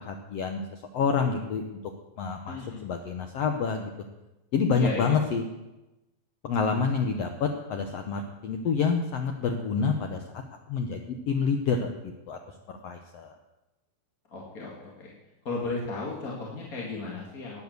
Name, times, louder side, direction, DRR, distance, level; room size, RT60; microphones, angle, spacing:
voice 1, 0.0-1.8 2.2-3.9 4.5-5.4 6.4-10.4 10.7-12.4 12.7-13.3, left 5 dB, 90° left, 5 dB, 1.4 m, -28 dB
voice 2, 2.5-2.9 4.7-5.1 14.3-15.1 15.4-17.6, left 3 dB, 30° left, -3 dB, 1.8 m, -35 dB
12.0 x 9.6 x 7.9 m, 1.0 s
omnidirectional pair, 4.1 m